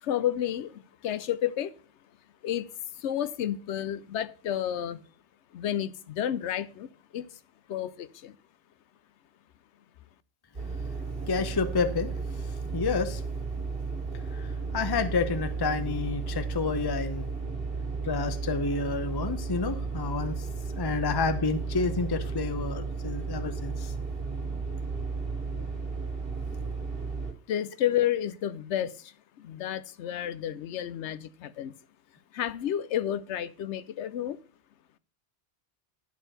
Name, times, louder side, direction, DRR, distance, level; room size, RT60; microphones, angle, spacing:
voice 1, 0.0-1.7 2.4-5.0 5.5-7.3 7.7-8.4 27.5-31.7 32.3-34.4, left 11 dB, 85° left, 0.9 m, -31 dB
sound 1, 10.5-27.3, right 4 dB, 55° right, 1.9 m, -34 dB
voice 2, 11.3-13.2 14.1-17.3 18.0-20.5 20.8-23.9, left 4 dB, 25° left, 0.6 m, -30 dB
10.5 x 4.5 x 6.4 m
omnidirectional pair, 1.1 m